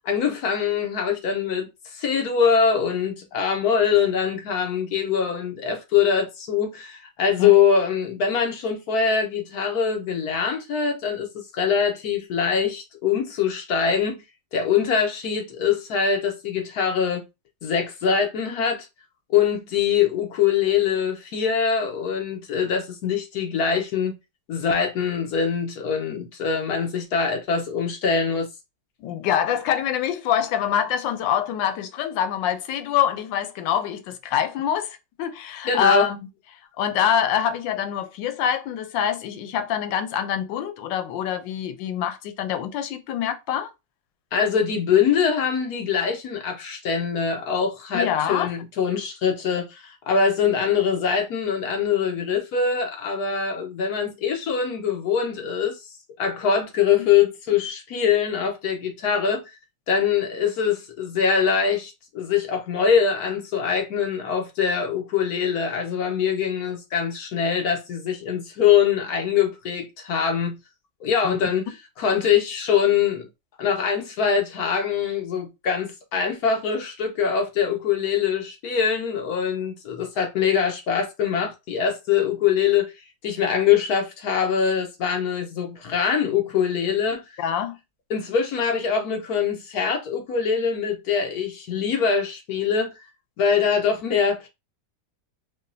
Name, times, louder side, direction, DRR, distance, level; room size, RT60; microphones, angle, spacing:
voice 1, 0.0-14.2 14.5-17.2 17.6-18.9 19.3-24.2 24.5-28.5 35.7-36.1 44.3-55.8 56.2-59.4 59.9-70.6 71.0-71.7 72.0-73.3 73.6-82.9 83.2-87.2 88.1-92.9 93.4-94.5, left 7 dB, 65° left, 1.2 m, -23 dB
voice 2, 29.0-36.2 36.8-43.7 47.9-48.5 57.0-57.1 71.2-71.4 87.4-87.8, left 9 dB, 90° left, 1.3 m, -25 dB
5.0 x 2.3 x 2.6 m
omnidirectional pair, 1.9 m